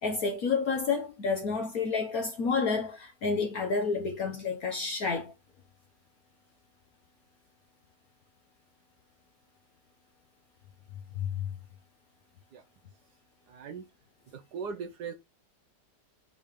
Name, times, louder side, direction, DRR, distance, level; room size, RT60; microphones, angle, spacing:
voice 1, 0.0-5.3 11.2-11.5, left 4 dB, 60° left, 1.4 m, -30 dB
voice 2, 13.5-13.8 14.5-15.1, right 6 dB, 70° right, 1.3 m, -37 dB
7.4 x 3.5 x 3.6 m
omnidirectional pair, 1.9 m